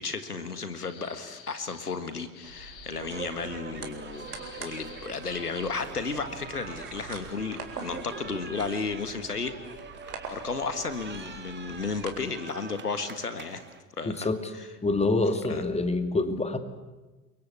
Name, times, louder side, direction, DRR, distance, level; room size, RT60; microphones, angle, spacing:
voice 1, 0.0-9.6 10.3-13.6 14.0-14.3 15.4-15.6, left 4 dB, 90° left, 11 dB, 1.8 m, -33 dB
sound 1, 0.8-2.0 2.3-3.0 4.1-5.9, left 8 dB, 55° left, 4.6 m, -50 dB
sound 2, 2.4-12.1, right 4 dB, 80° right, 4.0 m, -43 dB
sound 3, 3.1-13.8, right 5 dB, 25° right, 2.7 m, -45 dB
voice 2, 14.0-14.5 14.8-16.6, left 2 dB, 15° left, 9 dB, 2.5 m, -26 dB
30.0 x 23.0 x 8.3 m, 1.2 s
figure-of-eight pair, 70°, 45 cm